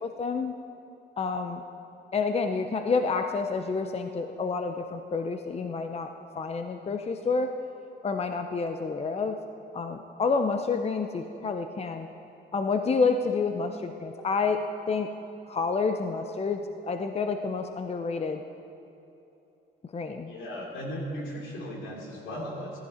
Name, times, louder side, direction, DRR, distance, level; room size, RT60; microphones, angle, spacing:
voice 1, 0.0-0.5 1.2-1.6 2.1-7.5 8.0-9.4 9.7-12.1 12.5-14.6 14.9-15.1 15.5-18.4 19.9-20.3, left 4 dB, 30° left, 6 dB, 0.7 m, -29 dB
voice 2, 20.3-22.8, equal, 80° left, -1 dB, 3.0 m, -36 dB
15.0 x 14.5 x 4.4 m, 2.9 s
cardioid pair, 90°, 20 cm